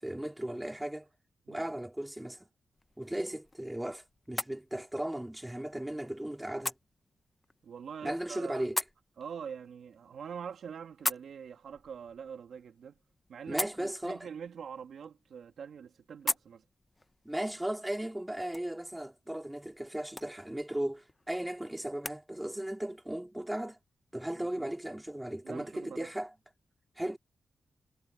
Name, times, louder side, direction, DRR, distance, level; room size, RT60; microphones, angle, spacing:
voice 1, 0.0-1.1 1.5-2.5 3.0-6.7 8.0-8.8 13.5-14.3 17.2-23.8 24.1-26.3 27.0-27.2, right 1 dB, 10° right, 4.2 m, -36 dB
sound 1, 2.7-22.2, left 2 dB, 20° left, 0.8 m, -43 dB
voice 2, 7.6-8.7 9.2-13.0 13.3-16.6 24.4-24.7 25.4-26.1, right 7 dB, 80° right, 2.8 m, -44 dB
wide cardioid pair, 125°, 0 cm